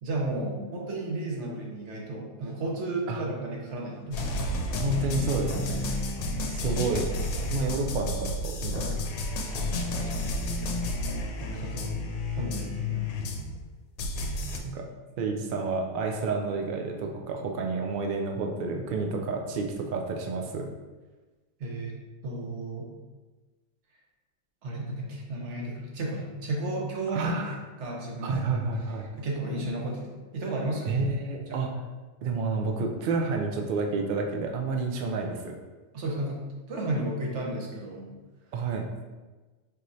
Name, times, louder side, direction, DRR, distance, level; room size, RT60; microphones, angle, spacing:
voice 1, 0.0-4.4 6.7-6.8 10.0-10.3 11.4-12.0 12.4-13.1 21.6-21.9 22.2-22.9 24.6-28.4 29.2-31.0 31.5-31.7 35.9-38.1, right 2 dB, 60° right, -1 dB, 1.1 m, -33 dB
sound 1, 4.1-13.6 14.0-14.6, left 1 dB, 80° left, 1.0 m, -31 dB
voice 2, 4.7-5.8 6.5-7.1 7.5-9.1 14.7-14.8 15.2-20.6 27.1-27.5 28.2-29.1 30.8-31.7 32.2-35.5 38.5-38.9, right 3 dB, 90° right, 2 dB, 0.4 m, -29 dB
4.5 x 3.1 x 2.6 m, 1.2 s
omnidirectional pair, 1.5 m